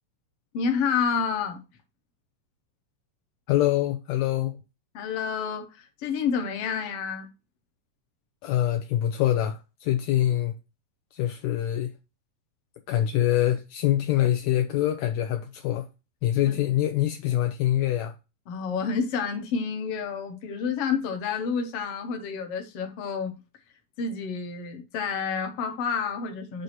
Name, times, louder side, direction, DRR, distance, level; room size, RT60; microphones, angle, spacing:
voice 1, 0.5-1.6 4.9-7.3 16.4-16.6 18.5-23.4 24.0-26.6, left 6 dB, 60° left, 1.6 m, -29 dB
voice 2, 3.5-4.6 8.4-10.5 11.1-11.9 12.9-15.9 16.2-18.1, left 12 dB, 80° left, 1.6 m, -24 dB
7.8 x 2.8 x 5.8 m
omnidirectional pair, 3.8 m